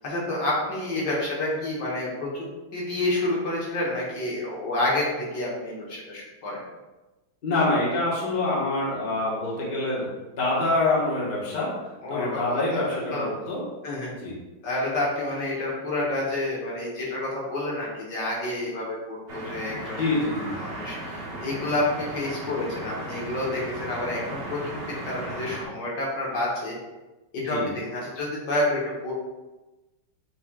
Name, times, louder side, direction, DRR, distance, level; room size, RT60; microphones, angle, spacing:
voice 1, 0.0-2.5 2.7-6.6 12.0-13.3 13.8-14.1 14.6-20.0 20.5-26.8 27.3-29.1, left 1 dB, 65° left, -4 dB, 1.5 m, -29 dB
voice 2, 7.4-10.1 10.4-11.7 12.1-13.6 14.2-14.4 20.0-20.5 23.9-24.0 27.5-27.7, left 2 dB, 30° left, -6 dB, 1.0 m, -25 dB
sound 1, 19.3-25.7, right 1 dB, 85° right, 0.5 m, -36 dB
7.1 x 3.1 x 2.2 m, 1.1 s
omnidirectional pair, 2.2 m